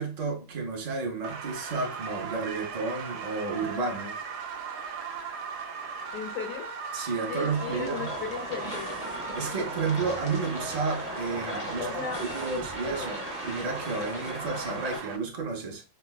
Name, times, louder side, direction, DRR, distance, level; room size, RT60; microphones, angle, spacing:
voice 1, 0.0-4.2 6.9-8.1 9.3-11.9 12.2-15.8, right 4 dB, 90° right, 0.3 m, -32 dB
sound 1, 1.2-15.2, right 5 dB, 70° right, 0.8 m, -38 dB
voice 2, 6.1-6.7 7.3-9.0 11.8-12.2, left 6 dB, 70° left, 1.0 m, -36 dB
sound 2, 7.5-15.0, left 1 dB, 50° left, 0.4 m, -37 dB
4.3 x 2.1 x 2.2 m
omnidirectional pair, 1.7 m